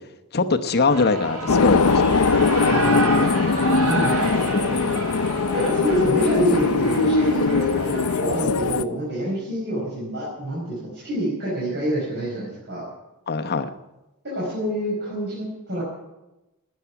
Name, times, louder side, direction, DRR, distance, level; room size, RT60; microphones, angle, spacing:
voice 1, 0.3-2.3 13.3-13.7, left 3 dB, 45° left, 7 dB, 0.9 m, -22 dB
Shout / Cheering, 0.7-8.4, right 2 dB, 90° right, 6.7 m, -30 dB
sound 1, 1.5-8.8, left 4 dB, 75° left, 0.6 m, -21 dB
voice 2, 2.7-5.0 5.5-12.8 14.2-15.8, right 1 dB, 50° right, -6 dB, 5.2 m, -27 dB
13.0 x 9.1 x 9.7 m, 0.98 s
head